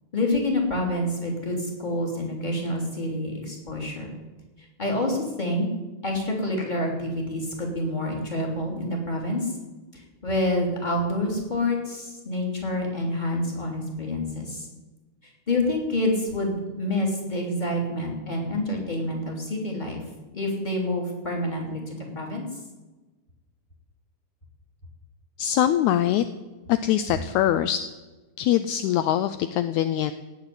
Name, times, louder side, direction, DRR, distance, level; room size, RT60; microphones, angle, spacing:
voice 1, 0.1-4.1 4.6-5.7 6.0-9.5 9.9-14.7 15.2-20.0 20.3-22.5, left 1 dB, 15° left, 0 dB, 3.0 m, -27 dB
voice 2, 25.4-26.3 26.7-27.8 28.4-30.1, left 11 dB, 80° left, 12 dB, 1.7 m, -23 dB
17.5 x 6.7 x 9.8 m, 1.2 s
omnidirectional pair, 4.0 m